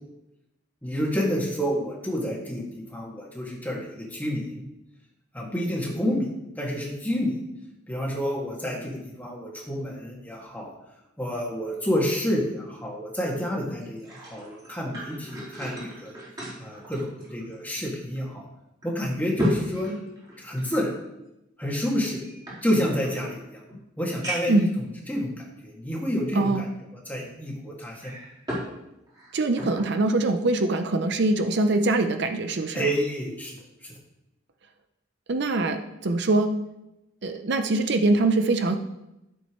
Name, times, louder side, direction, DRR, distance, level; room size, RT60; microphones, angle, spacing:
voice 1, 0.8-4.6 5.3-6.2 6.6-7.4 7.9-10.7 11.2-16.1 16.6-18.4 18.8-19.9 20.4-20.9 21.6-22.2 22.6-23.6 24.0-24.6 25.1-25.3 25.6-26.6 27.1-28.1 32.7-33.6, equal, 10° left, -3 dB, 2.1 m, -29 dB
sound 1, 13.8-17.8 18.2-18.3 18.8-20.8 21.7-23.1 23.7-23.8 24.2-24.7 25.4-25.5 27.8-28.7 29.1-29.9 30.4-30.6, equal, 20° right, 3.7 m, -34 dB
voice 2, 26.3-26.7 29.3-32.8 35.3-36.5 37.2-38.7, right 2 dB, 60° right, 7 dB, 0.6 m, -23 dB
13.5 x 7.2 x 3.1 m, 0.91 s
head